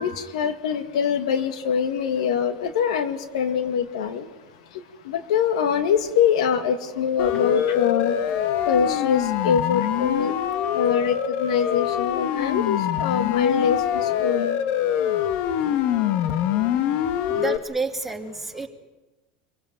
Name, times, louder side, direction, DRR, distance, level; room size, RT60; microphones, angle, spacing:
voice 1, 0.0-4.3 4.7-8.2 8.6-10.4 10.7-14.6, left 7 dB, 90° left, 8 dB, 2.0 m, -24 dB
Siren, 7.2-17.6, left 10 dB, 60° left, 1.6 m, -24 dB
voice 2, 17.3-18.7, right 3 dB, 5° right, 2 dB, 2.6 m, -29 dB
26.0 x 17.5 x 9.2 m, 1.1 s
supercardioid pair, 120°, 3 cm